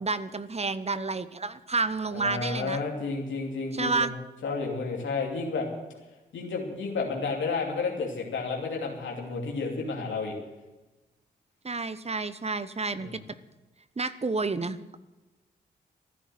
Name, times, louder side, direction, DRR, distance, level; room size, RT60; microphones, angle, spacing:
voice 1, 0.0-2.8 3.7-4.1 11.6-13.2 14.0-15.0, right 3 dB, 35° right, 14 dB, 0.9 m, -30 dB
voice 2, 2.1-4.1 4.4-5.7 6.3-10.3 13.0-13.2, left 4 dB, 80° left, 0 dB, 2.7 m, -31 dB
15.0 x 9.9 x 7.8 m, 1.1 s
supercardioid pair, 45°, 19 cm